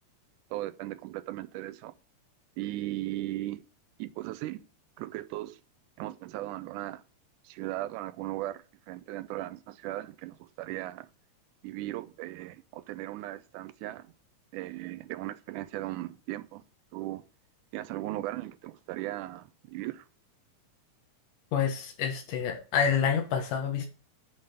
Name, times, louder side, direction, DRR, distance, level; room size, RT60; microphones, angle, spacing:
voice 1, 0.5-1.9 2.6-3.6 4.0-4.6 5.0-5.6 6.0-7.0 7.4-11.1 11.6-14.1 14.5-16.6 16.9-17.2 17.7-20.1, right 16 dB, 80° right, 2.0 m, -37 dB
voice 2, 21.5-23.9, left 7 dB, 85° left, 2.8 m, -28 dB
8.5 x 3.8 x 6.7 m
omnidirectional pair, 3.6 m